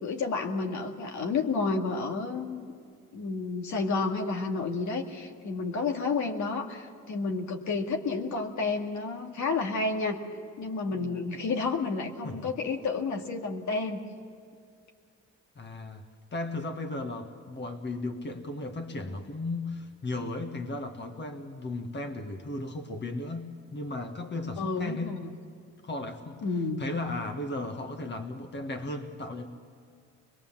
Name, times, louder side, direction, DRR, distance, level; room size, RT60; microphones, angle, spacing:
voice 1, 0.0-2.7 3.1-10.2 10.6-14.0 24.6-25.4 26.4-26.8, left 4 dB, 70° left, 3 dB, 2.2 m, -30 dB
voice 2, 15.6-16.0 16.3-25.2 25.8-26.5 26.8-29.5, left 2 dB, 35° left, 6 dB, 1.7 m, -35 dB
23.0 x 21.5 x 7.4 m, 2.2 s
cardioid pair, 90°, 30 cm